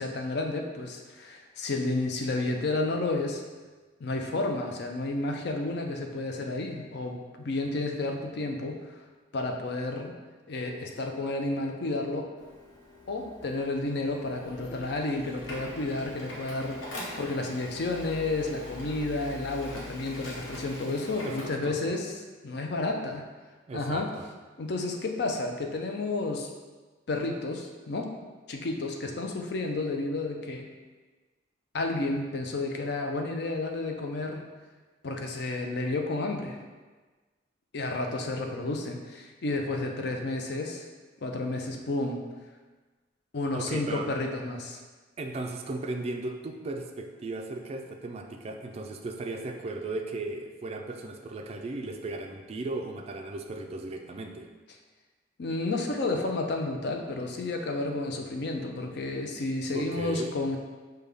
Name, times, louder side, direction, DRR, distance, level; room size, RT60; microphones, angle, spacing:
voice 1, 0.0-3.4 4.0-8.8 9.3-10.1 10.5-12.3 13.1-23.3 23.7-24.1 24.6-26.5 27.1-28.1 28.5-30.7 31.7-34.5 35.0-36.6 37.7-40.9 41.2-42.2 43.3-44.8 55.4-60.6, left 2 dB, 60° left, 3 dB, 0.5 m, -31 dB
Printer, 12.4-21.5, left 1 dB, 90° left, 1.0 m, -42 dB
voice 2, 21.2-21.8 23.7-24.3 43.5-44.1 45.2-54.5 59.7-60.3, right 2 dB, 30° right, 3 dB, 0.3 m, -36 dB
5.3 x 2.2 x 3.4 m, 1.3 s
head